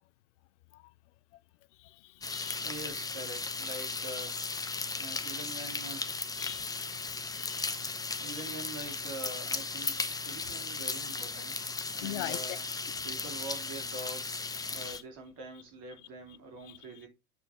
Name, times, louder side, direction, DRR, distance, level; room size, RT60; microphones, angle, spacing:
voice 1, 1.8-2.6 6.3-7.7 8.3-8.5 12.0-12.6 14.6-15.0 16.6-16.8, left 17 dB, 55° left, 0.5 m, -43 dB
sound 1, 2.2-15.0, left 4 dB, 10° left, 0.7 m, -36 dB
voice 2, 2.6-4.4 4.9-6.1 8.2-12.7 13.0-17.1, right 2 dB, 50° right, 3.4 m, -45 dB
7.0 x 4.1 x 4.3 m
figure-of-eight pair, 85°, 43 cm